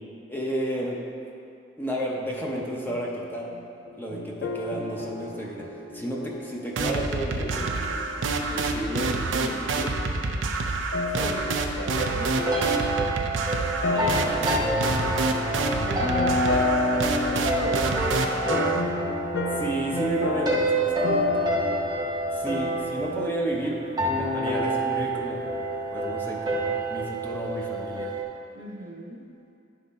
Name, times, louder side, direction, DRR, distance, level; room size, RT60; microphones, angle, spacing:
voice 1, 0.3-1.0 1.8-3.5 4.0-7.7 8.5-9.9 19.6-21.5 22.3-25.4 25.9-28.1, right 1 dB, 10° left, -3 dB, 0.7 m, -32 dB
sound 1, 2.6-9.4 9.7-10.0 10.9-21.9, left 2 dB, 65° left, 0.5 m, -33 dB
sound 2, 6.8-18.8, right 3 dB, 90° right, 0.5 m, -28 dB
voice 2, 11.1-12.8 13.8-15.3 15.8-16.4 16.8-18.9 28.5-29.2, right 1 dB, 70° right, -2 dB, 1.2 m, -37 dB
sound 3, 11.8-28.2, right 1 dB, 20° right, 0.8 m, -28 dB
10.5 x 3.8 x 4.1 m, 2.5 s
head